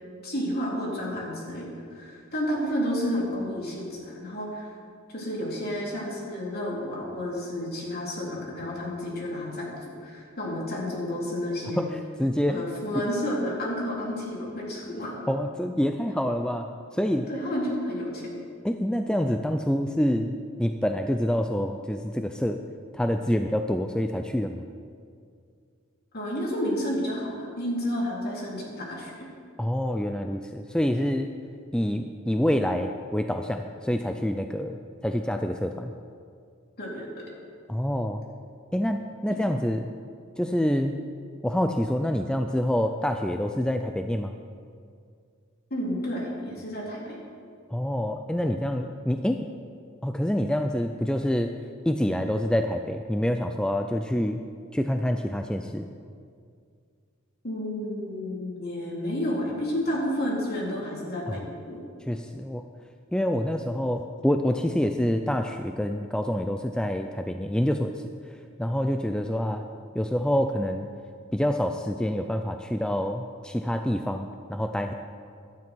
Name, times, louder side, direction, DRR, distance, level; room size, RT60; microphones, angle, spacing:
voice 1, 0.2-4.7 5.1-11.9 12.5-15.1 17.3-18.3 26.1-29.3 36.8-37.2 45.7-47.2 57.4-61.4 61.7-61.8, equal, 50° left, -4 dB, 3.6 m, -31 dB
voice 2, 11.8-12.6 15.3-17.3 18.6-22.6 22.9-24.6 29.6-31.3 31.7-35.9 37.7-38.2 38.7-39.9 40.4-40.9 41.4-44.4 47.7-49.5 50.0-51.6 51.9-54.4 54.7-55.9 61.3-61.4 62.1-62.6 63.1-67.9 68.6-69.6 69.9-70.9 71.3-74.9, equal, 5° left, 6 dB, 0.4 m, -27 dB
16.5 x 12.5 x 4.6 m, 2.3 s
head